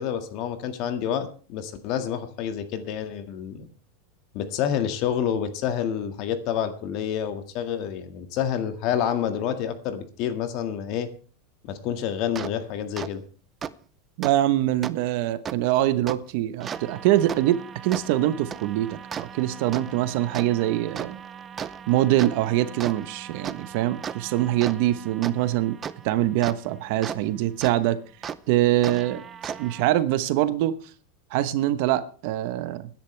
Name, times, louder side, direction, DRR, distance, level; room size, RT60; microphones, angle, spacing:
voice 1, 0.0-3.7 4.3-11.1 11.6-13.2, left 9 dB, 40° left, 8 dB, 1.8 m, -28 dB
sound 1, 12.3-12.5 13.0-13.1 13.6-13.7 14.2-14.3 14.8-14.9 15.4-15.6 16.1-16.2 16.6-27.2 27.6-27.7 28.2-28.4 28.8-29.9, right 7 dB, 20° right, 0.6 m, -37 dB
voice 2, 14.2-21.2 21.9-25.8 26.0-28.0 28.5-29.2 29.6-30.8 31.3-32.9, right 14 dB, 50° right, 13 dB, 1.0 m, -24 dB
23.0 x 10.5 x 3.4 m, 0.39 s
supercardioid pair, 165°, 0 cm